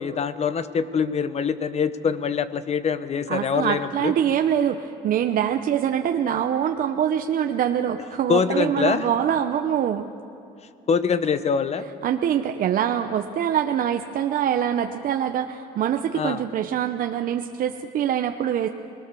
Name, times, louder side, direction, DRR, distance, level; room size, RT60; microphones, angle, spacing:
voice 1, 0.0-4.1 8.3-9.0 10.9-11.9 16.1-16.4, left 6 dB, 40° left, 12 dB, 1.0 m, -24 dB
voice 2, 3.3-10.1 12.0-18.7, right 9 dB, 55° right, 6 dB, 0.8 m, -24 dB
25.5 x 19.5 x 7.0 m, 2.6 s
cardioid pair, 110°, 17 cm